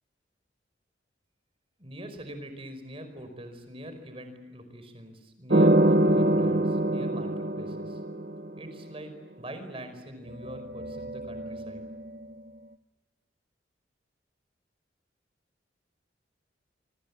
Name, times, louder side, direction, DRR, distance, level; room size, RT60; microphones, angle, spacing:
voice 1, 1.8-8.0 8.5-11.9, right 1 dB, 30° right, 8 dB, 5.1 m, -43 dB
sound 1, 5.5-8.6 10.3-12.0, right 1 dB, 50° right, 1.2 m, -25 dB
26.5 x 25.0 x 8.5 m, 1.1 s
head